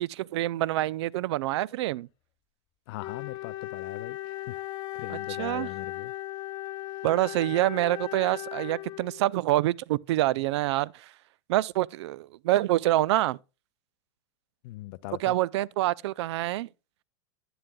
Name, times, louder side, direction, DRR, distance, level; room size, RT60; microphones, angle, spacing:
voice 1, 0.0-2.1 5.1-5.7 7.0-11.1 11.5-13.4 15.2-16.7, right 16 dB, 75° right, 0.4 m, -26 dB
voice 2, 2.9-4.6 5.0-6.1 14.6-15.4, left 18 dB, 60° left, 0.4 m, -40 dB
Wind instrument woodwind instrument, 3.0-9.4, left 14 dB, 35° left, 0.8 m, -37 dB
11.0 x 10.5 x 2.3 m
supercardioid pair, 145°, 14 cm